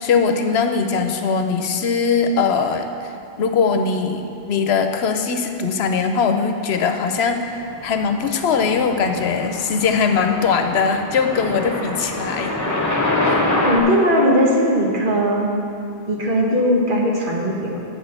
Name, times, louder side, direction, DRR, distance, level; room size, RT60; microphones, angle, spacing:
voice 1, 0.0-3.1 3.4-12.5 13.2-13.5, left 5 dB, 90° left, 6 dB, 0.9 m, -21 dB
sound 1, 7.7-13.8, left 2 dB, 20° left, 0.9 m, -25 dB
voice 2, 13.6-15.5 16.1-17.8, equal, 55° right, -2 dB, 1.5 m, -19 dB
7.8 x 6.2 x 6.5 m, 2.5 s
omnidirectional pair, 1.1 m